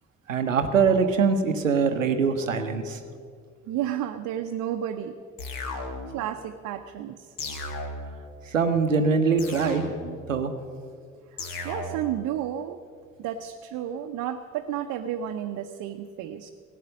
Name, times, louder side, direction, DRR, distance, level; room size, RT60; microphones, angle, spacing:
voice 1, 0.3-3.0 8.5-9.8 10.3-10.5, right 5 dB, 90° right, 8 dB, 0.7 m, -23 dB
voice 2, 3.7-5.1 6.1-7.3 11.6-12.8 13.2-16.5, right 10 dB, 55° right, 6 dB, 0.7 m, -31 dB
sound 1, 5.4-6.3 7.4-8.3 9.4-10.3 11.4-12.3, left 2 dB, 60° left, 1.5 m, -35 dB
16.5 x 9.3 x 6.3 m, 2.2 s
figure-of-eight pair, 45°, 38 cm